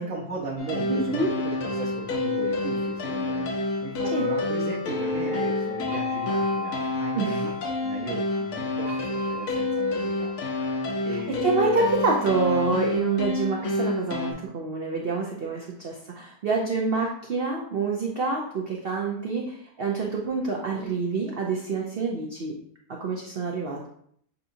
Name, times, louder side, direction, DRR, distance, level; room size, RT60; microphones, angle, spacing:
voice 1, 0.0-3.6 3.8-7.5 7.8-10.3 11.0-12.0, right 4 dB, 60° right, -5 dB, 1.0 m, -36 dB
sound 1, 0.6-14.3, left 2 dB, 70° left, 1.2 m, -28 dB
voice 2, 0.9-1.3 4.1-4.3 7.1-7.5 11.3-22.5 23.0-23.8, right 4 dB, 90° right, -1 dB, 0.5 m, -27 dB
sound 2, 4.1-9.5, left 4 dB, 35° right, 0.8 m, -36 dB
6.8 x 2.8 x 2.6 m, 0.66 s
omnidirectional pair, 1.8 m